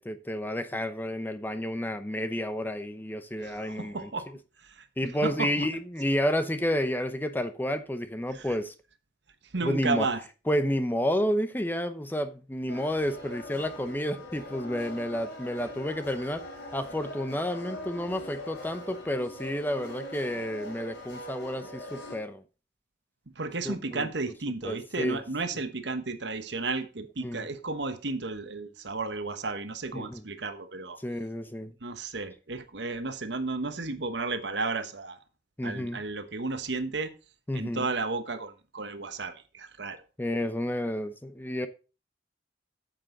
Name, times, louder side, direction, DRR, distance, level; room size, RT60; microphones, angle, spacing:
voice 1, 0.0-4.1 5.0-8.7 9.6-10.1 10.5-16.4 16.7-22.4 23.6-24.3 24.6-25.2 27.2-27.5 29.9-30.2 31.0-31.7 35.6-36.0 37.5-37.9 40.2-41.7, equal, 10° left, 0.7 m, -30 dB
voice 2, 3.4-4.3 4.6-4.8 5.2-5.7 8.3-8.5 9.5-10.2 23.4-31.0 31.8-35.2 35.6-37.1 37.5-40.0, right 3 dB, 75° right, 1.2 m, -33 dB
sound 1, 12.7-22.2, left 1 dB, 70° left, 2.8 m, -42 dB
9.2 x 7.7 x 3.9 m
head